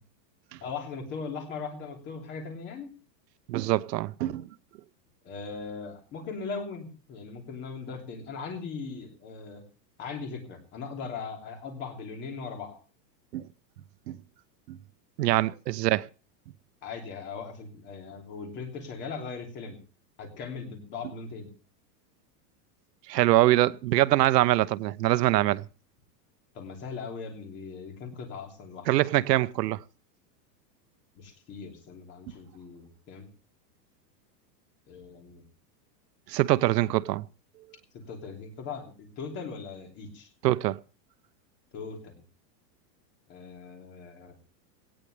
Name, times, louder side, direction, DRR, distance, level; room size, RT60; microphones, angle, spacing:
voice 1, 0.6-2.9 5.2-9.6 10.0-12.8 16.8-19.8 20.2-21.5 26.5-28.9 31.1-33.3 34.9-35.4 37.9-40.3 41.7-42.2 43.3-44.4, left 5 dB, 20° left, 3.0 m, -39 dB
voice 2, 3.5-4.5 13.3-13.5 14.1-14.2 14.7-14.8 15.2-16.1 23.1-25.6 28.9-29.8 36.3-37.2 40.4-40.8, right 16 dB, 70° right, 0.9 m, -24 dB
18.5 x 16.0 x 3.3 m
supercardioid pair, 180°, 50 cm